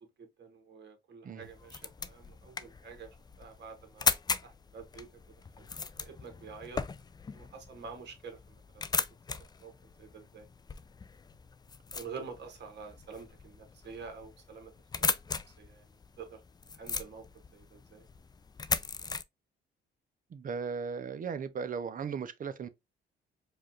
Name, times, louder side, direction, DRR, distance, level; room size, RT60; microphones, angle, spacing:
voice 1, 0.2-3.1 3.4-4.2 4.4-5.1 5.6-5.7 6.0-6.8 7.3-8.4 9.6-9.7 10.0-10.5 11.9-14.7 15.6-15.8 16.2-16.4 16.8-17.2 17.5-18.0, right 5 dB, 60° right, 1.4 m, -47 dB
sound 1, 1.4-19.2, left 5 dB, 20° left, 0.3 m, -38 dB
voice 2, 20.3-22.7, right 6 dB, 45° right, 0.6 m, -37 dB
4.8 x 2.4 x 2.8 m
cardioid pair, 90°, 20 cm